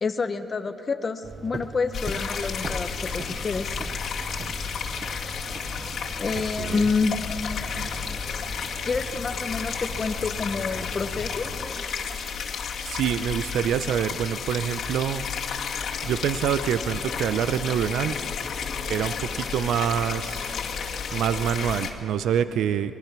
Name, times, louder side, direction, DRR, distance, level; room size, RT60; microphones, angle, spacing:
voice 1, 0.0-3.8 6.2-7.2 8.9-11.5, left 4 dB, 35° left, 7 dB, 0.9 m, -28 dB
sound 1, 1.2-11.7, right 4 dB, 30° right, 0.6 m, -41 dB
sound 2, 1.9-21.9, left 6 dB, 65° left, 2.2 m, -32 dB
sound 3, 2.0-11.9, left 2 dB, 15° left, 1.8 m, -45 dB
voice 2, 12.8-15.2 16.0-18.2 18.9-20.5 21.1-22.9, right 9 dB, 75° right, 12 dB, 0.6 m, -26 dB
25.0 x 20.0 x 6.0 m, 2.7 s
cardioid pair, 90°, 0 cm